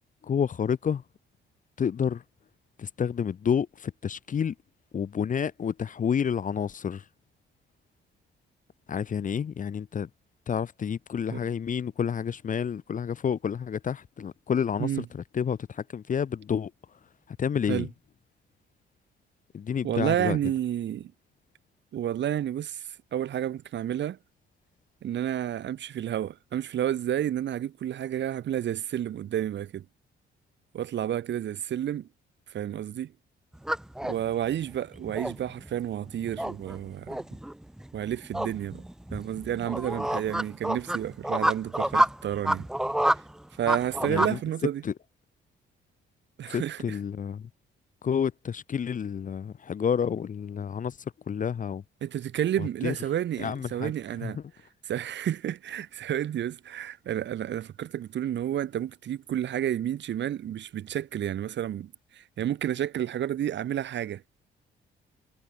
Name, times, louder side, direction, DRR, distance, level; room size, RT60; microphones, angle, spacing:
voice 1, 0.2-1.0 1.8-2.2 2.8-4.5 4.9-7.0 8.9-10.1 10.5-16.7 17.3-17.9 19.5-20.4 44.0-44.4 44.8-44.9 46.5-47.5 48.0-51.8 52.6-52.9 53.4-53.9 54.2-54.4, left 7 dB, 40° left, 0.9 m, -29 dB
voice 2, 19.8-21.1 21.9-24.2 25.0-29.8 30.7-32.1 32.5-33.1 34.0-37.2 37.9-38.8 39.1-42.7 43.6-44.8 46.4-47.0 52.0-54.4 54.9-64.2, right 11 dB, 65° right, 1.6 m, -30 dB
sound 1, 33.5-44.3, right 1 dB, 5° right, 0.3 m, -29 dB
cardioid pair, 90°, 20 cm